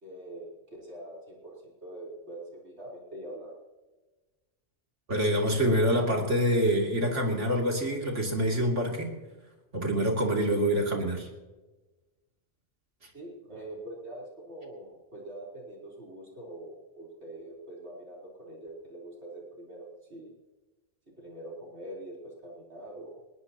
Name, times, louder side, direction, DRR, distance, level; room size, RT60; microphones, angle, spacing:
voice 1, 0.0-3.5 13.1-20.3 21.2-23.2, right 1 dB, 65° right, -4 dB, 4.3 m, -44 dB
voice 2, 5.1-9.1 9.7-11.3, equal, 85° right, 0 dB, 3.3 m, -26 dB
20.5 x 19.5 x 2.9 m, 1.2 s
omnidirectional pair, 1.2 m